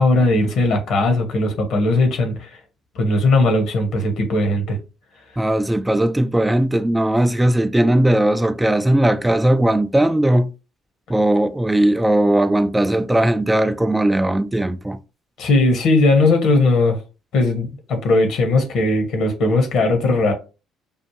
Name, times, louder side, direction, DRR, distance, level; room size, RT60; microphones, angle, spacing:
voice 1, 0.0-2.5 2.9-4.8 15.4-17.0 17.3-20.3, left 2 dB, 60° left, 1.2 m, -18 dB
voice 2, 5.4-10.5 11.1-15.0, right 1 dB, 10° right, 0.4 m, -18 dB
5.4 x 2.4 x 3.0 m
figure-of-eight pair, 50°, 0 cm